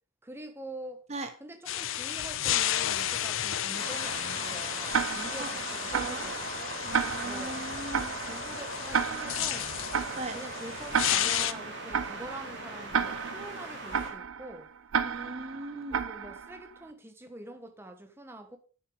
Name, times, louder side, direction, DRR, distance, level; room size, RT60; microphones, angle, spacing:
voice 1, 0.2-1.0 1.4-7.0 7.2-7.7 8.3-9.7 10.3-14.7 15.9-18.6, right 1 dB, 10° right, 1.2 m, -45 dB
sound 1, 1.7-11.5, left 11 dB, 70° left, 0.6 m, -33 dB
sound 2, 3.7-14.1, right 1 dB, 55° right, 2.9 m, -39 dB
Tick-tock, 4.9-16.8, right 6 dB, 75° right, 0.6 m, -33 dB
voice 2, 5.9-6.3 6.8-8.4 10.2-10.4 15.0-16.1, right 2 dB, 30° right, 1.1 m, -39 dB
10.5 x 6.6 x 5.1 m
head